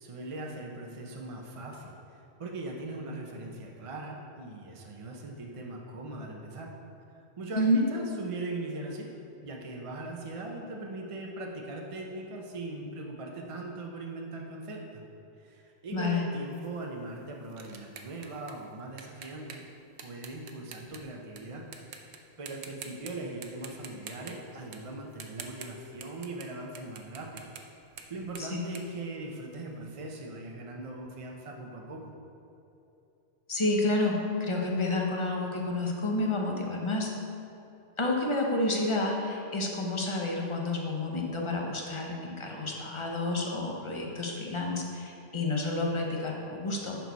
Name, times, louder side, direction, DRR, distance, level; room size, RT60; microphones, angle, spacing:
voice 1, 0.0-6.7 7.1-9.1 9.4-15.0 15.4-19.6 20.0-21.6 22.4-27.4 28.1-32.1, right 2 dB, 35° right, 0 dB, 0.6 m, -40 dB
voice 2, 15.9-16.2 28.4-28.6 33.5-37.1 38.0-47.0, left 2 dB, 30° left, 0 dB, 0.8 m, -29 dB
sound 1, 16.5-21.4 21.7-22.2 22.5-23.1 23.4-29.8, right 6 dB, 65° right, 0.9 m, -47 dB
10.5 x 4.7 x 4.1 m, 2.8 s
omnidirectional pair, 1.2 m